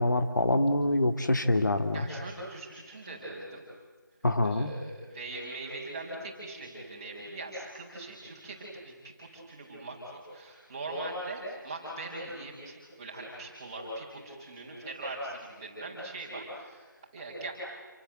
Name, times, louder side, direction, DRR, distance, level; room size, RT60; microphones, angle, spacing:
voice 1, 0.0-2.1 4.2-4.7, left 1 dB, 60° left, 8 dB, 2.4 m, -25 dB
voice 2, 1.9-3.6 4.4-17.5, right 2 dB, 15° right, -5 dB, 6.0 m, -41 dB
29.5 x 25.0 x 7.9 m, 1.4 s
figure-of-eight pair, 170°, 11 cm